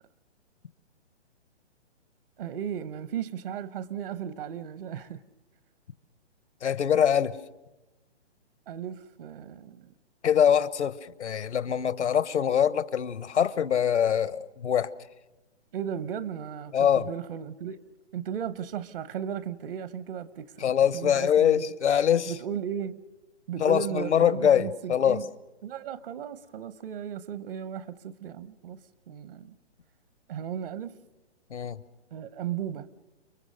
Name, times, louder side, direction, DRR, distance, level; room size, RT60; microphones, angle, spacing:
voice 1, 2.4-5.2 8.7-9.9 15.7-17.8 18.1-20.6 20.9-21.6 22.3-23.0 23.5-25.3 25.6-29.5 30.3-31.0 32.1-32.9, right 9 dB, 55° right, 0.9 m, -35 dB
voice 2, 6.6-7.4 10.2-14.9 16.7-17.1 20.6-22.3 23.6-25.2 31.5-31.8, left 9 dB, 80° left, 1.1 m, -24 dB
30.0 x 21.5 x 6.6 m
hypercardioid pair, 140°, 34 cm